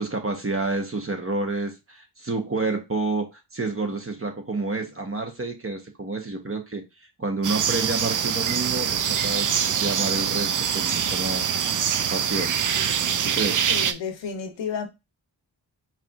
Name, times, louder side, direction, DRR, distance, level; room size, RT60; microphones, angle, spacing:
voice 1, 0.0-11.5 12.1-12.6 13.2-13.7, right 3 dB, 30° right, 1.0 m, -29 dB
sound 1, 7.4-13.9, right 8 dB, 45° right, 0.5 m, -24 dB
voice 2, 13.7-14.9, left 6 dB, 85° left, 0.9 m, -31 dB
4.7 x 2.9 x 2.4 m
cardioid pair, 55°, 44 cm